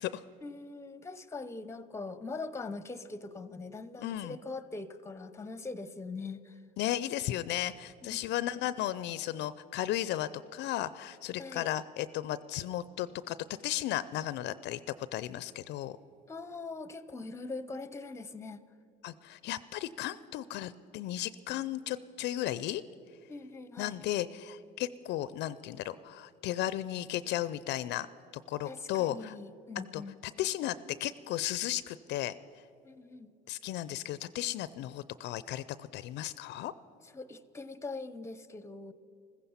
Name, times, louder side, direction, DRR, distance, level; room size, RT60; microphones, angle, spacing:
voice 1, 0.4-6.6 8.0-8.3 11.4-11.7 16.3-18.6 23.3-24.0 28.6-30.1 32.8-33.3 37.0-38.9, left 3 dB, 15° left, 16 dB, 0.7 m, -42 dB
voice 2, 4.0-4.4 6.8-13.4 13.6-16.0 19.0-22.8 23.8-28.1 28.5-29.3 29.9-30.0 30.4-32.3 33.5-36.7, left 13 dB, 60° left, 17 dB, 0.5 m, -35 dB
15.0 x 15.0 x 5.6 m, 2.6 s
supercardioid pair, 90°, 21 cm